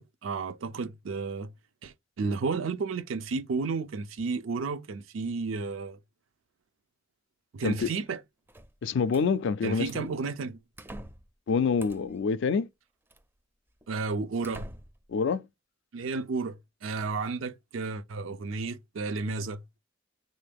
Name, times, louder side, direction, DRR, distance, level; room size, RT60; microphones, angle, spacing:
voice 1, 0.0-1.5 1.8-6.0 7.5-8.2 9.6-10.6 13.9-14.7 15.9-16.6 16.8-19.6, right 4 dB, 90° right, 0.5 m, -32 dB
sound 1, 8.5-9.3 9.8-10.2 10.8-11.3 11.8-12.2 13.1-13.2 13.8-13.9 14.4-15.1, right 1 dB, 10° right, 0.4 m, -45 dB
voice 2, 8.8-10.1 11.5-12.7 15.1-15.5, left 5 dB, 65° left, 0.3 m, -26 dB
3.7 x 2.5 x 3.4 m
head